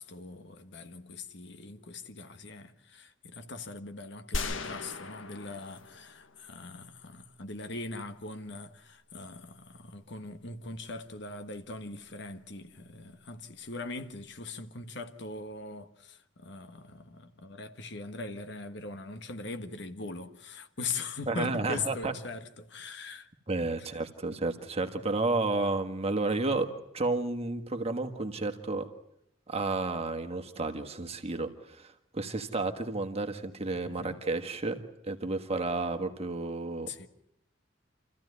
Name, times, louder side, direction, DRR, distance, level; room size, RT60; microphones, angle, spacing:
voice 1, 0.0-23.3 33.8-34.2 36.9-37.1, left 3 dB, 65° left, 1.4 m, -41 dB
sound 1, 4.3-6.7, left 3 dB, 80° left, 1.4 m, -37 dB
voice 2, 21.3-22.1 23.5-26.7 26.9-28.9 29.5-34.8 35.0-36.9, right 3 dB, 30° right, 1.6 m, -31 dB
28.0 x 15.0 x 9.7 m
head